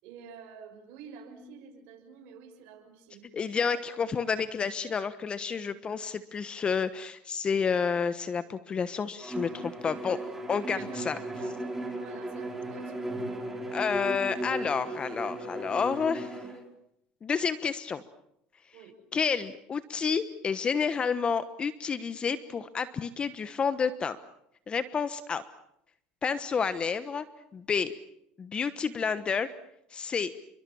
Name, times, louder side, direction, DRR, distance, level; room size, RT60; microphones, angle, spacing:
voice 1, 0.0-3.3 10.6-11.6 11.9-13.1 18.7-18.9, right 6 dB, 65° right, 2 dB, 6.6 m, -49 dB
voice 2, 3.3-10.2 10.5-11.2 13.7-16.4 17.2-18.0 19.1-24.2 24.7-25.4 26.2-27.2 27.5-27.9 28.4-29.5 29.9-30.3, left 6 dB, 30° left, 13 dB, 1.2 m, -30 dB
Bowed string instrument, 9.2-16.6, right 1 dB, 10° right, 5.6 m, -36 dB
29.0 x 24.0 x 7.1 m, 0.76 s
supercardioid pair, 105°, 4 cm